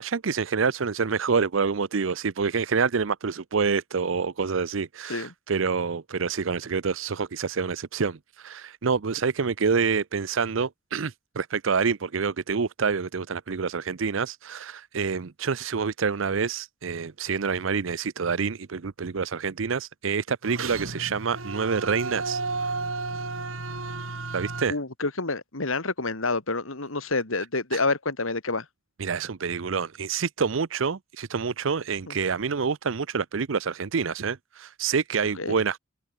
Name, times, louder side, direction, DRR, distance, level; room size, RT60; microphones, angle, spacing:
voice 1, 0.0-22.4 24.3-24.7 27.7-27.8 29.0-35.8, right 5 dB, 70° right, 0.6 m, -27 dB
sound 1, 20.4-24.6, right 3 dB, 90° right, 5.7 m, -32 dB
voice 2, 24.7-28.6 32.1-32.2 35.4-35.5, left 3 dB, 85° left, 2.6 m, -28 dB
head